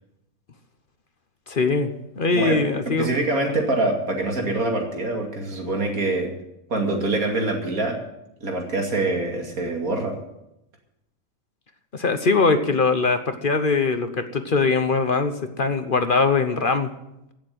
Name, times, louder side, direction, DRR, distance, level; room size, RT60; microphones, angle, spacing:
voice 1, 1.5-3.2 11.9-16.9, left 4 dB, 45° left, 8 dB, 1.0 m, -22 dB
voice 2, 3.0-6.3 6.7-8.0 8.4-10.2, right 2 dB, 85° right, 2 dB, 3.0 m, -24 dB
16.0 x 7.0 x 9.1 m, 0.87 s
omnidirectional pair, 1.4 m